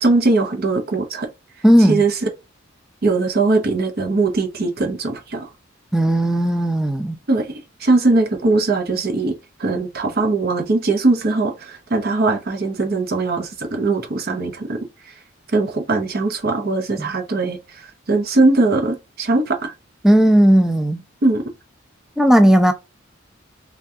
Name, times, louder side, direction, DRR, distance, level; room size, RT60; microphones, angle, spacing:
voice 1, 0.0-1.3 1.8-2.2 3.0-5.5 7.3-14.8 15.5-19.7 21.2-21.5, right 3 dB, 50° right, 0.6 m, -20 dB
voice 2, 1.6-2.0 5.9-7.2 17.0-17.1 20.0-21.0 22.2-22.7, equal, 5° right, 0.3 m, -15 dB
3.4 x 2.3 x 2.6 m
head